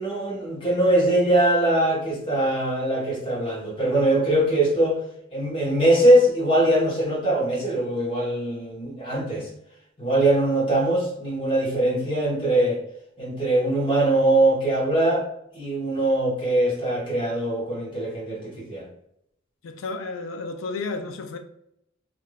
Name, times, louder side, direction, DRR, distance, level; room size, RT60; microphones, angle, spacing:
voice 1, 0.0-5.0 5.3-9.5 10.0-12.8 13.2-15.2 15.5-18.9, right 1 dB, 25° left, 0.9 m, -22 dB
voice 2, 19.6-21.4, left 3 dB, 80° left, 0.4 m, -32 dB
3.2 x 2.5 x 2.2 m
head